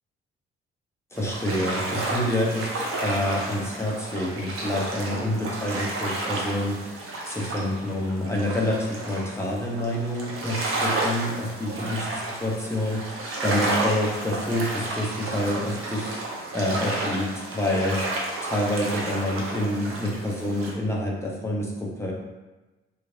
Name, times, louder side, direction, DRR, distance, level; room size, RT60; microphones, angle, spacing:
voice 1, 1.1-16.2 16.5-22.1, left 1 dB, 10° left, -3 dB, 0.8 m, -28 dB
sound 1, 1.1-20.7, right 2 dB, 45° right, 0.7 m, -31 dB
3.0 x 2.6 x 2.6 m, 1.1 s
figure-of-eight pair, 40°, 31 cm